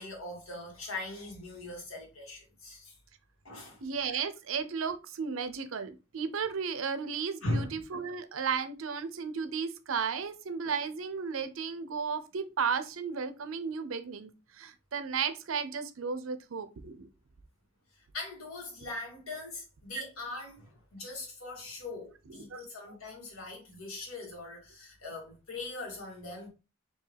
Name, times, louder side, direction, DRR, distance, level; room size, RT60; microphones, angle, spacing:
voice 1, 0.0-2.9 3.4-3.8 7.4-7.8 18.1-26.5, left 2 dB, 80° left, 1.8 m, -40 dB
voice 2, 3.8-14.3 14.6-17.1 22.3-22.6, right 6 dB, 70° right, 0.5 m, -34 dB
4.5 x 2.7 x 3.3 m
head